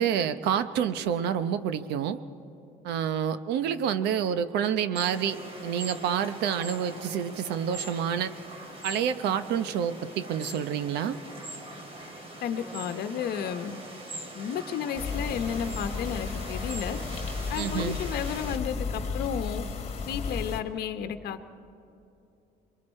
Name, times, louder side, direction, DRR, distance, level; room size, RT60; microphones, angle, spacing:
voice 1, 0.0-2.2 2.8-8.3 8.8-11.2 17.6-18.0, right 8 dB, 80° right, 12 dB, 0.9 m, -28 dB
sound 1, 5.0-18.6, right 1 dB, 35° right, 2.8 m, -41 dB
voice 2, 12.4-13.8 14.3-17.0 17.5-19.6 20.0-21.5, left 8 dB, 70° left, 8 dB, 1.0 m, -32 dB
sound 2, 15.0-20.6, left 4 dB, 40° left, 1.6 m, -34 dB
27.5 x 22.5 x 4.4 m, 2.9 s
cardioid pair, 110°, 17 cm